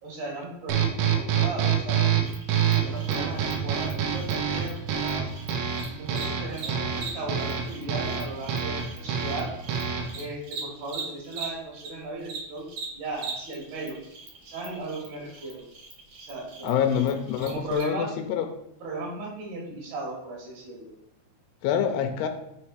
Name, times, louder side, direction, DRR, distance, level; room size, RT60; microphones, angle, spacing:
voice 1, 0.0-2.1 2.6-5.3 6.0-9.6 10.1-14.0 14.4-15.6 16.2-16.8 17.4-18.2 18.8-20.9, right 2 dB, 70° right, -3 dB, 3.5 m, -36 dB
sound 1, 0.7-10.2, right 8 dB, 85° right, 3.1 m, -27 dB
Cricket, 2.2-11.9 12.2-17.8, right 5 dB, 55° right, 1.6 m, -41 dB
voice 2, 16.6-18.5 21.6-22.3, left 8 dB, 85° left, 5 dB, 2.5 m, -26 dB
7.4 x 3.1 x 4.7 m, 0.81 s
omnidirectional pair, 4.9 m